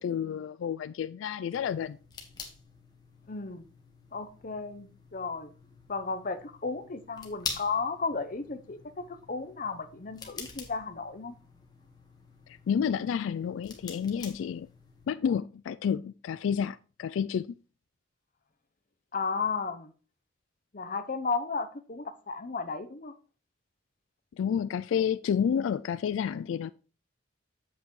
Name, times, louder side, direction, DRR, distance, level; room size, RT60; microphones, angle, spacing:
voice 1, 0.0-2.0 12.7-14.7 15.1-17.5 24.4-26.7, left 7 dB, 90° left, 0.3 m, -30 dB
sound 1, 1.5-15.1, left 4 dB, 20° left, 1.4 m, -46 dB
voice 2, 3.3-3.7 4.1-5.5 5.9-11.3 19.1-19.9 20.7-23.1, left 4 dB, 45° left, 0.8 m, -34 dB
8.2 x 7.6 x 3.1 m
head